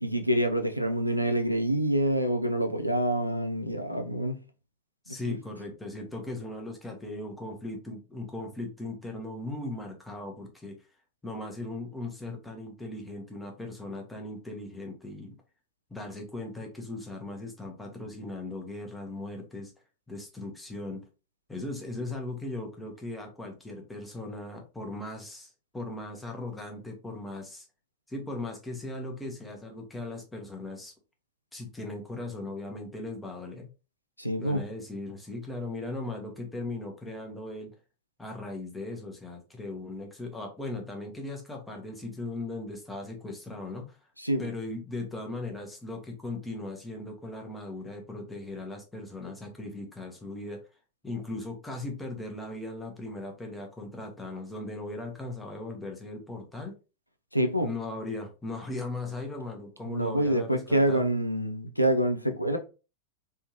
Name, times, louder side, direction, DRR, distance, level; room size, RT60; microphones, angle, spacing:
voice 1, 0.0-4.4 5.3-5.4 34.2-34.6 44.2-44.5 57.3-57.7 59.9-62.6, right 1 dB, 90° right, 0.4 m, -26 dB
voice 2, 5.1-10.8 11.2-15.4 15.9-19.7 20.1-21.0 21.5-27.6 28.1-30.9 31.5-33.7 34.4-37.7 38.2-44.0 44.4-50.6 51.0-56.7 57.6-61.0, left 2 dB, 10° left, 1.0 m, -38 dB
3.4 x 2.7 x 2.9 m
figure-of-eight pair, 90°, 0 cm